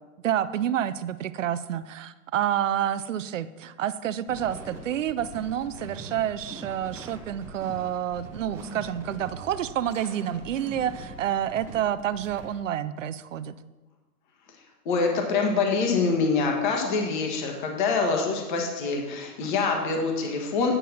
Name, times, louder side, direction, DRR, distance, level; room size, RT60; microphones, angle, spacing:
voice 1, 0.2-13.6, right 10 dB, 55° right, 14 dB, 0.6 m, -29 dB
sound 1, 4.3-12.4, right 2 dB, 5° right, 0.8 m, -42 dB
voice 2, 14.8-20.7, left 4 dB, 30° left, 2 dB, 1.4 m, -25 dB
9.4 x 5.6 x 5.8 m, 1.2 s
hypercardioid pair, 155°, 47 cm